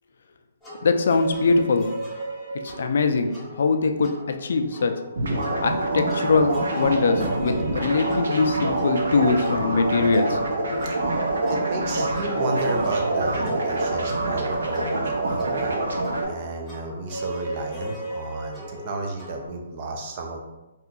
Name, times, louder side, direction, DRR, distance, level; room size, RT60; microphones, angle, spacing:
sound 1, 0.6-19.5, right 1 dB, ahead, 0.8 m, -37 dB
voice 1, 0.8-1.9 2.6-4.1 4.4-4.9 5.6-10.4 10.7-10.8, left 4 dB, 65° left, 7 dB, 0.4 m, -22 dB
sound 2, 5.2-16.2, right 2 dB, 80° right, 0.7 m, -26 dB
voice 2, 10.8-15.8 16.2-20.4, right 2 dB, 35° right, 2 dB, 0.5 m, -32 dB
2.7 x 2.4 x 3.7 m, 1.0 s
hypercardioid pair, 160°, 0 cm